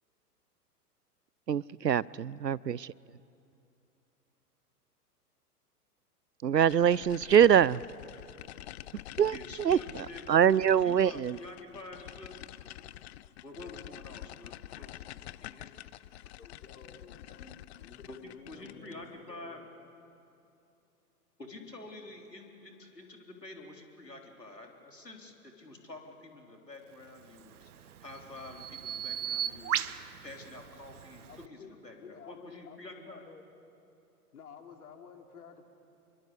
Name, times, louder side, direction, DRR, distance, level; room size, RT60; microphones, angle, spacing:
voice 1, 1.5-2.9 6.4-7.8 9.2-9.8 10.3-11.4, right 9 dB, 90° right, 24 dB, 0.6 m, -24 dB
sound 1, 6.7-19.0, left 14 dB, 45° left, 0.7 m, -47 dB
voice 2, 9.3-12.4 13.4-15.0 15.4-15.8 17.3-17.8 18.1-19.6 21.4-33.2, left 2 dB, 90° left, 2 dB, 4.0 m, -48 dB
voice 3, 16.4-17.5 17.8-19.6 31.3-33.4 34.3-35.6, left 6 dB, 65° left, 4 dB, 3.3 m, -52 dB
Bird vocalization bird call bird song, 27.2-31.5, right 10 dB, 65° right, 1.0 m, -37 dB
27.0 x 23.5 x 8.2 m, 2.7 s
figure-of-eight pair, 105°, 48 cm